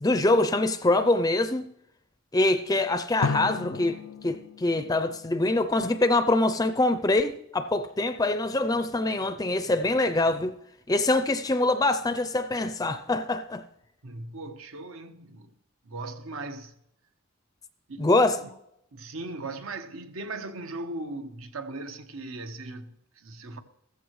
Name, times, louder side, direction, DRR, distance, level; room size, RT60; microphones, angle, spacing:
voice 1, 0.0-1.7 2.3-10.5 10.9-13.6 18.0-18.4, left 2 dB, 15° left, 0.4 m, -24 dB
Drum, 3.2-5.9, left 5 dB, 75° left, 0.4 m, -35 dB
voice 2, 14.0-15.5 15.8-16.7 17.9-18.1 18.4-18.5 18.9-23.6, right 2 dB, 75° right, 1.2 m, -38 dB
15.5 x 14.0 x 3.2 m
head